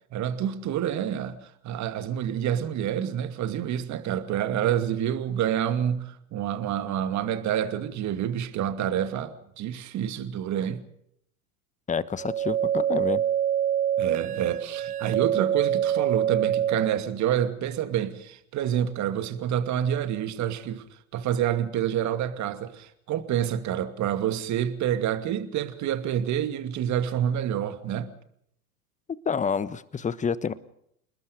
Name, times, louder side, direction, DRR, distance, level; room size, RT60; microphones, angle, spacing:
voice 1, 0.1-10.8 14.0-20.8 21.1-28.1, right 10 dB, 40° right, 2.5 m, -28 dB
voice 2, 11.9-13.2 29.2-30.5, left 6 dB, 15° left, 1.3 m, -28 dB
sound 1, 12.2-17.1, right 10 dB, 85° right, 0.7 m, -25 dB
28.5 x 20.5 x 5.2 m
hypercardioid pair, 85°, 44 cm